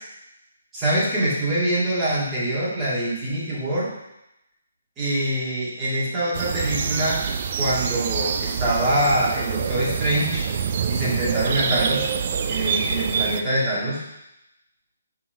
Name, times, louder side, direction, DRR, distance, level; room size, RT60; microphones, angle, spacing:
voice 1, 0.7-3.9 5.0-7.2 7.6-10.5 10.9-12.1 12.5-14.0, right 1 dB, 15° right, -8 dB, 1.9 m, -24 dB
sound 1, 6.3-13.4, right 6 dB, 35° right, 0.4 m, -26 dB
5.7 x 3.6 x 5.6 m, 0.87 s
hypercardioid pair, 165°, 0 cm